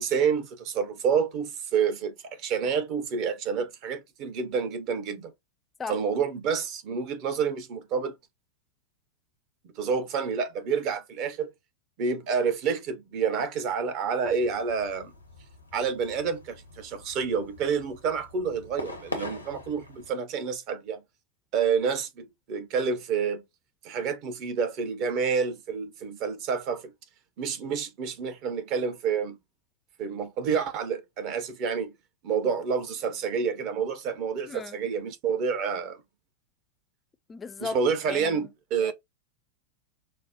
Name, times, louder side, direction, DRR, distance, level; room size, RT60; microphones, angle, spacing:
voice 1, 0.0-5.3 5.9-8.1 9.8-11.5 12.0-15.1 15.7-21.0 21.5-23.4 23.8-26.9 27.4-29.4 30.0-31.9 32.2-36.0 37.6-38.9, right 6 dB, 40° right, 0.8 m, -28 dB
sound 1, 14.3-20.1, left 2 dB, 85° left, 0.8 m, -43 dB
voice 2, 34.5-34.8 37.3-37.8 38.1-38.5 38.8-38.9, left 4 dB, 15° left, 0.4 m, -36 dB
5.1 x 2.1 x 2.7 m
figure-of-eight pair, 90°, 0 cm